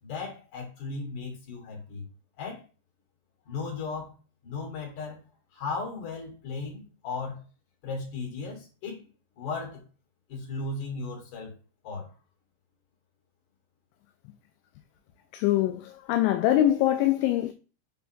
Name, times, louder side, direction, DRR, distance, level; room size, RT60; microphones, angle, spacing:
voice 1, 0.0-2.1 2.4-2.6 3.5-4.2 4.4-5.3 5.5-7.4 7.8-9.1 9.4-9.8 10.3-11.5 11.8-12.1, left 4 dB, 45° left, 3.5 m, -36 dB
voice 2, 15.3-17.5, left 13 dB, 85° left, 2.8 m, -23 dB
7.3 x 4.4 x 3.5 m
omnidirectional pair, 5.6 m